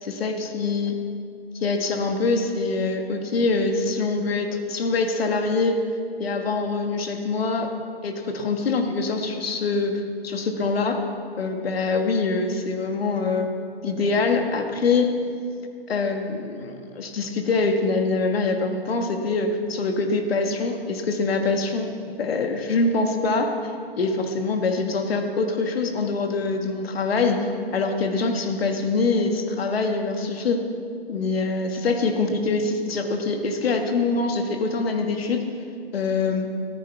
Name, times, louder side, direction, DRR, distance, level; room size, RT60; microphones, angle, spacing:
voice 1, 0.0-1.0 1.5-5.8 6.2-7.7 8.0-11.0 11.4-13.5 13.8-15.1 15.9-23.5 24.0-30.6 31.1-35.4 35.9-36.5, left 3 dB, 70° left, 5 dB, 1.7 m, -24 dB
14.0 x 13.5 x 4.6 m, 2.3 s
hypercardioid pair, 125°, 31 cm